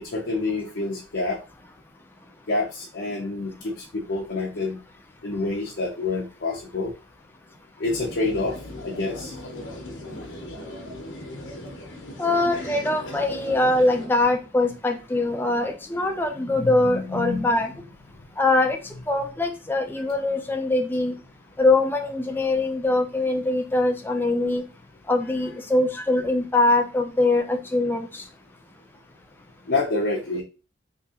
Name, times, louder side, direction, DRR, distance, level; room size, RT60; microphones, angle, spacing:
voice 1, 0.0-1.4 2.5-4.8 5.2-6.9 7.8-8.6 8.8-9.4 16.5-17.4 29.7-30.4, left 3 dB, 65° left, -1 dB, 0.6 m, -27 dB
sound 1, 7.8-14.1, left 1 dB, 85° left, 0.9 m, -37 dB
voice 2, 12.2-17.7 18.4-21.1 21.6-24.6 25.1-28.3, left 2 dB, 10° left, 4 dB, 0.4 m, -23 dB
3.5 x 2.8 x 2.8 m, 0.33 s
head